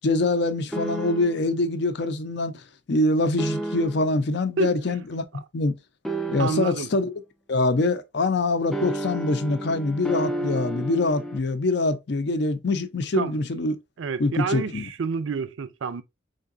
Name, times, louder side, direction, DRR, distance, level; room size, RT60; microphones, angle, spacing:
voice 1, 0.0-2.6 2.9-5.2 5.5-5.8 6.3-7.1 7.5-13.8 14.2-14.9, left 2 dB, 60° left, 0.5 m, -24 dB
sound 1, 0.7-1.5 3.4-4.2 6.0-6.9 8.7-11.4, right 1 dB, 5° left, 0.4 m, -31 dB
voice 2, 6.4-6.9 13.1-13.4 14.0-16.0, right 5 dB, 85° right, 0.4 m, -28 dB
3.8 x 3.4 x 2.5 m
head